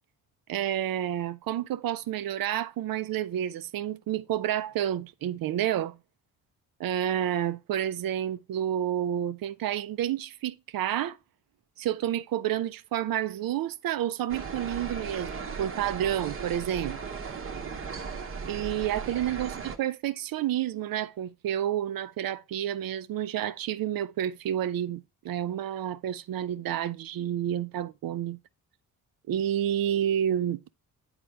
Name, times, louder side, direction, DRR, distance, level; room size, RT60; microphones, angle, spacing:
voice 1, 0.5-6.0 6.8-11.2 11.8-17.0 18.5-28.4 29.3-30.7, right 11 dB, 50° right, 0.6 m, -30 dB
sound 1, 14.3-19.8, right 5 dB, 30° right, 0.9 m, -37 dB
8.7 x 4.3 x 3.4 m
hypercardioid pair, 45°, 45 cm